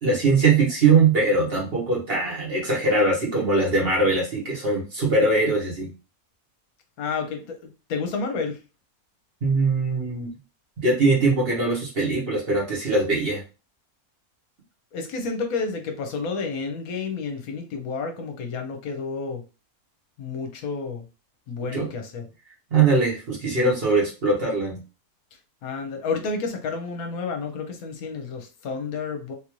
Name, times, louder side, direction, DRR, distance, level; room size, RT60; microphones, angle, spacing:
voice 1, 0.0-5.9 9.4-10.3 10.8-13.4 21.7-21.9 22.7-24.8, right 3 dB, 40° right, -3 dB, 1.3 m, -21 dB
voice 2, 7.0-8.6 14.9-19.4 20.2-21.1 21.5-22.3 25.6-29.3, left 4 dB, 70° left, 4 dB, 1.1 m, -30 dB
3.5 x 2.6 x 3.0 m, 0.31 s
omnidirectional pair, 1.6 m